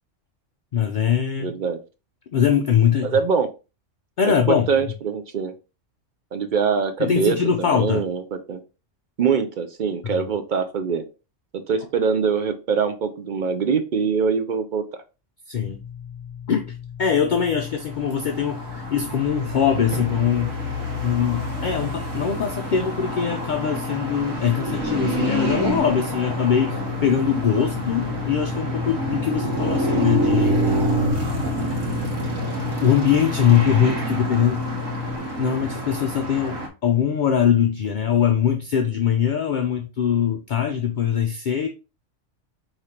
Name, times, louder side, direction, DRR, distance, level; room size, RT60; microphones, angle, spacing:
voice 1, 0.7-1.6 2.3-3.2 4.2-4.7 7.0-8.1 10.0-10.3 15.5-15.8 16.5-20.5 21.0-30.7 31.7-31.8 32.8-34.6 35.4-41.7, left 8 dB, 65° left, 0.4 m, -22 dB
voice 2, 1.4-1.8 3.0-3.5 4.2-5.5 6.3-8.6 9.2-11.0 11.7-14.8, right 6 dB, 60° right, 0.5 m, -23 dB
sound 1, 15.6-35.2, left 8 dB, 40° left, 0.9 m, -34 dB
sound 2, 17.9-36.7, right 1 dB, 90° right, 1.5 m, -27 dB
4.9 x 3.2 x 2.8 m
omnidirectional pair, 1.3 m